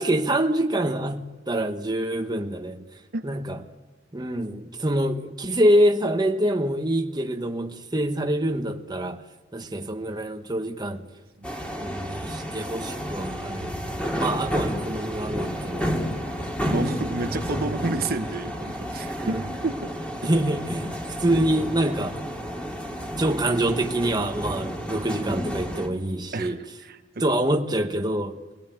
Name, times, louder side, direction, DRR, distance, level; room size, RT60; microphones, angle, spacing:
voice 1, 0.0-2.8 3.2-3.6 4.1-9.2 9.5-11.1 11.8-13.8 14.1-16.5 19.2-19.4 20.2-20.9 21.2-22.2 23.2-26.6 27.2-28.4, right 1 dB, 20° right, 1.1 m, -25 dB
sound 1, 11.4-25.9, equal, 5° left, 2.6 m, -31 dB
voice 2, 16.7-20.3 26.3-27.2, right 2 dB, 50° right, 0.9 m, -30 dB
23.5 x 18.5 x 9.1 m
head